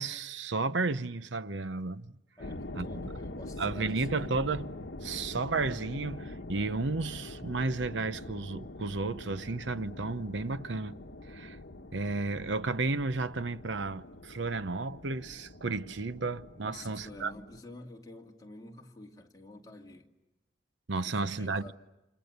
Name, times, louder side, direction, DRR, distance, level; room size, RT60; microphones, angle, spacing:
voice 1, 0.0-2.1 2.7-3.1 3.6-4.7 5.0-10.9 11.3-11.6 11.9-17.3 20.9-21.6, right 3 dB, 80° right, 0.9 m, -33 dB
sound 1, 2.4-17.6, left 1 dB, 70° left, 1.2 m, -44 dB
voice 2, 2.4-4.3 10.9-11.4 16.6-20.1 21.0-21.7, left 1 dB, 20° left, 2.6 m, -50 dB
29.0 x 28.5 x 6.8 m
head